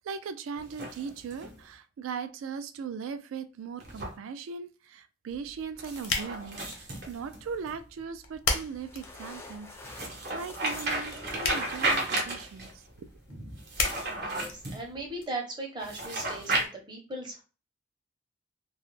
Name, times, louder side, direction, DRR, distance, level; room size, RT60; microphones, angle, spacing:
voice 1, 0.0-13.1, right 6 dB, 80° right, 0.3 m, -39 dB
sound 1, 0.6-1.6 3.8-4.1 5.8-7.7 9.8-12.7 13.6-14.8 15.8-16.6, right 2 dB, 55° right, 0.7 m, -33 dB
sound 2, 5.3-15.3, left 4 dB, 75° left, 0.6 m, -38 dB
sound 3, 8.3-13.3, left 2 dB, 15° left, 0.3 m, -49 dB
voice 2, 14.1-17.4, right 2 dB, 25° right, 0.6 m, -38 dB
2.2 x 2.0 x 3.0 m
head